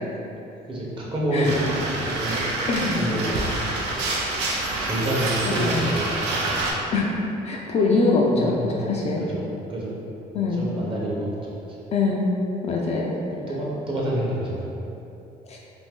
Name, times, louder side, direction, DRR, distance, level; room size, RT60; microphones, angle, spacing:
voice 1, 0.7-2.4 2.9-3.4 4.8-6.9 8.3-8.8 9.2-10.0 10.5-11.5 13.2-14.7, right 1 dB, 30° right, -5 dB, 0.8 m, -28 dB
sound 1, 1.4-6.7, right 2 dB, 85° right, 0.5 m, -27 dB
voice 2, 2.7-3.1 5.4-5.9 6.9-7.1 7.4-9.2 10.3-10.7 11.9-12.4 12.6-13.1 15.5-15.6, left 3 dB, 40° left, -2 dB, 0.4 m, -23 dB
2.6 x 2.6 x 3.6 m, 2.9 s
cardioid pair, 110°, 17 cm